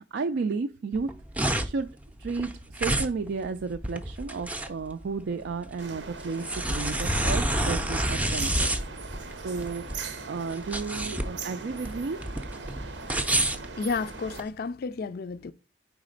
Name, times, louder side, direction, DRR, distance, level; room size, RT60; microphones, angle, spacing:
voice 1, 0.1-1.1 1.6-1.9 2.2-8.7 9.4-9.8 10.3-12.2, right 4 dB, 65° right, 0.4 m, -32 dB
sound 1, 0.9-14.5, right 1 dB, 10° right, 0.5 m, -29 dB
sound 2, 5.8-14.4, right 4 dB, 85° right, 0.8 m, -41 dB
voice 2, 13.8-15.5, left 4 dB, 55° left, 0.4 m, -31 dB
4.8 x 4.1 x 5.0 m
head